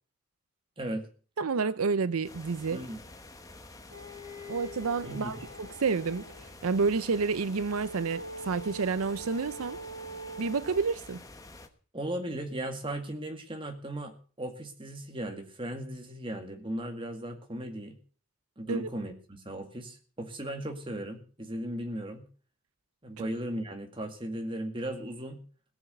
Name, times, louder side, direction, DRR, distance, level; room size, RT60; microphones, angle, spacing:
voice 1, 0.8-1.1 2.7-3.0 5.0-5.4 11.9-18.0 18.6-22.2 23.0-25.4, right 1 dB, 25° right, 2.1 m, -37 dB
voice 2, 1.4-2.8 4.5-6.2 6.6-9.8 10.4-11.2 18.7-18.9 23.2-23.3, right 4 dB, 80° right, 0.6 m, -29 dB
sound 1, 2.2-11.7, left 2 dB, 15° left, 1.2 m, -49 dB
sound 2, 3.9-6.5 7.7-11.0, right 1 dB, 50° right, 7.5 m, -44 dB
17.5 x 7.2 x 8.1 m
head